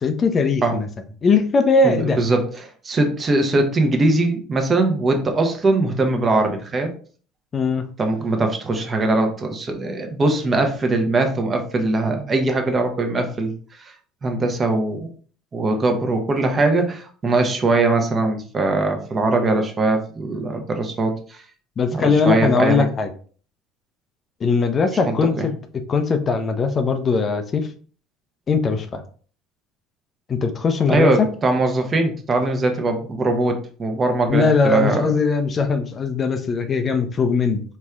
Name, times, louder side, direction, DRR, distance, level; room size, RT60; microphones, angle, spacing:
voice 1, 0.0-0.9 1.2-2.2 7.5-7.8 21.8-23.1 24.4-25.5 25.9-27.7 28.5-29.0 30.3-31.3 34.3-37.6, left 4 dB, 35° left, 7 dB, 0.5 m, -20 dB
voice 2, 1.8-6.9 8.0-13.9 14.2-15.1 15.5-21.4 21.9-22.8 25.1-25.5 30.9-35.1, right 2 dB, 30° right, 5 dB, 0.9 m, -21 dB
4.3 x 3.1 x 2.4 m, 0.42 s
figure-of-eight pair, 60°, 0 cm